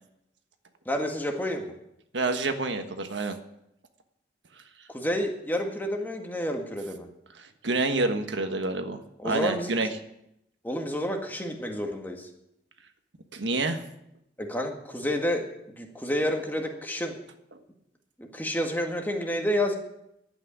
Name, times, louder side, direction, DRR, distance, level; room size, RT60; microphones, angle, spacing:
voice 1, 0.9-1.7 4.9-7.1 9.2-9.7 10.6-12.3 14.4-17.2 18.2-19.7, left 1 dB, 10° left, 2 dB, 1.8 m, -29 dB
voice 2, 2.1-3.4 7.3-9.0 9.2-9.9 13.3-13.8, right 3 dB, 85° right, 7 dB, 1.4 m, -28 dB
11.5 x 8.8 x 10.0 m, 0.82 s
head